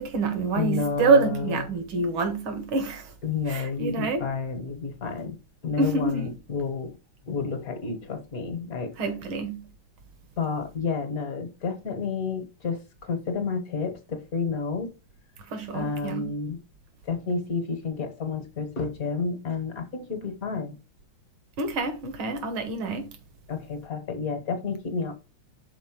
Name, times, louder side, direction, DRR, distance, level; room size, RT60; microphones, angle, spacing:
voice 1, 0.0-3.1 3.5-4.2 5.8-6.3 9.0-9.6 15.5-16.3 21.6-23.1, right 3 dB, 75° right, 2.1 m, -26 dB
voice 2, 0.5-1.6 3.2-5.4 5.6-6.9 7.2-8.9 10.4-14.9 15.7-16.6 17.0-20.8 23.5-25.1, left 5 dB, 50° left, 1.4 m, -30 dB
5.8 x 4.1 x 5.9 m
omnidirectional pair, 2.3 m